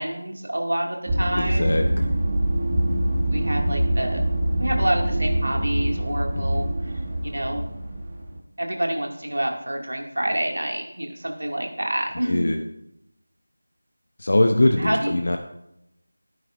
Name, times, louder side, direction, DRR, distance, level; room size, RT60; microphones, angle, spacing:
voice 1, 0.0-1.8 3.3-4.2 4.6-7.6 8.6-12.5 14.8-15.2, right 1 dB, 75° right, 1 dB, 2.2 m, -27 dB
sound 1, 1.1-8.4, right 1 dB, 20° right, 1.3 m, -24 dB
voice 2, 1.3-2.0 6.4-6.6 12.3-12.6 14.2-15.4, left 1 dB, 55° left, 4 dB, 0.7 m, -22 dB
16.0 x 9.4 x 2.6 m, 0.82 s
figure-of-eight pair, 170°, 0 cm